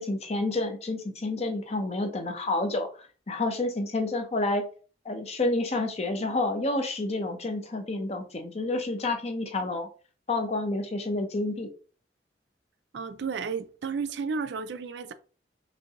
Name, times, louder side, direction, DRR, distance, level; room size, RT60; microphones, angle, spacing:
voice 1, 0.0-4.7 5.0-9.9 10.3-11.7, left 2 dB, 35° left, 0.7 m, -29 dB
voice 2, 12.9-15.1, right 5 dB, 70° right, 0.4 m, -32 dB
5.1 x 2.7 x 2.9 m
head